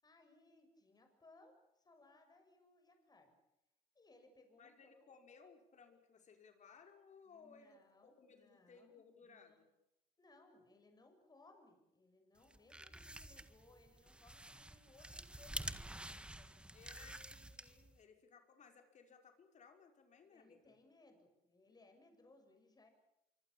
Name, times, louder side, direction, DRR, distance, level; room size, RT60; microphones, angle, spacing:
voice 1, 0.0-3.4 3.9-5.1 7.3-9.6 10.2-16.6 20.2-22.9, left 2 dB, 25° left, 5 dB, 7.3 m, -66 dB
voice 2, 4.6-9.7 16.7-20.8, left 5 dB, 45° left, 5 dB, 5.5 m, -62 dB
sound 1, 12.4-18.0, right 1 dB, 5° right, 1.8 m, -49 dB
25.5 x 25.0 x 7.3 m, 0.87 s
cardioid pair, 110°, 17 cm